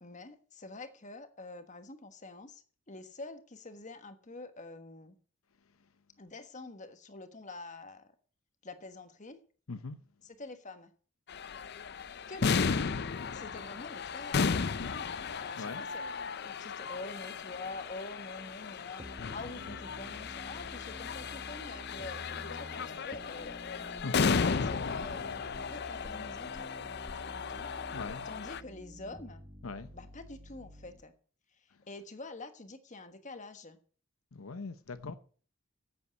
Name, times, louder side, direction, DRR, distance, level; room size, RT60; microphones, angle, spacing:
voice 1, 0.0-5.1 6.2-8.1 8.6-9.4 10.2-10.9 12.3-12.6 13.3-23.5 24.3-27.7 28.2-29.4 29.9-31.1 31.7-33.8, left 2 dB, 35° left, 1.4 m, -47 dB
voice 2, 9.7-10.0 14.8-14.9 15.5-15.9 19.7-19.8 24.0-24.3 27.1-27.2 27.9-28.3 29.6-29.9 31.7-31.8 34.3-35.1, left 3 dB, 80° left, 0.8 m, -41 dB
sound 1, 11.3-28.6, left 5 dB, 50° left, 0.5 m, -35 dB
sound 2, 19.0-31.0, right 1 dB, 20° right, 1.3 m, -50 dB
10.0 x 8.4 x 8.1 m
head